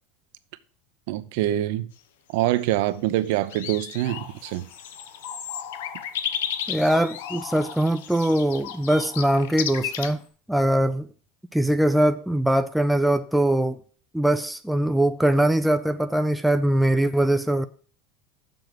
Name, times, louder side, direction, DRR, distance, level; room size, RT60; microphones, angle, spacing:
voice 1, 1.1-1.9 2.3-4.7, right 14 dB, 60° right, 0.7 m, -25 dB
sound 1, 2.6-2.7 3.3-10.1, left 9 dB, 85° left, 1.0 m, -34 dB
sound 2, 4.1-10.3, left 8 dB, 60° left, 3.6 m, -43 dB
voice 2, 6.7-10.2 10.5-11.1 11.5-13.8 14.1-17.7, right 1 dB, ahead, 0.4 m, -22 dB
7.0 x 6.4 x 7.5 m
supercardioid pair, 160°, 0 cm